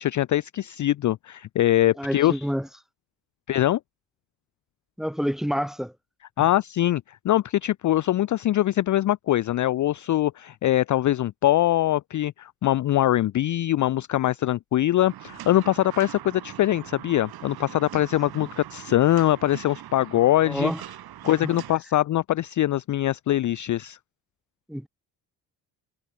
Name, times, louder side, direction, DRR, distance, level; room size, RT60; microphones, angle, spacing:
voice 1, 0.0-2.4 3.5-3.8 6.4-20.7 21.2-24.0, left 14 dB, 40° left, 0.5 m, -23 dB
voice 2, 2.0-2.7 5.0-5.9 18.4-18.5 20.5-20.8 21.4-21.6 24.7-24.9, equal, ahead, 1.9 m, -28 dB
sound 1, 15.1-21.7, right 12 dB, 50° right, 0.9 m, -42 dB
supercardioid pair, 60°, 46 cm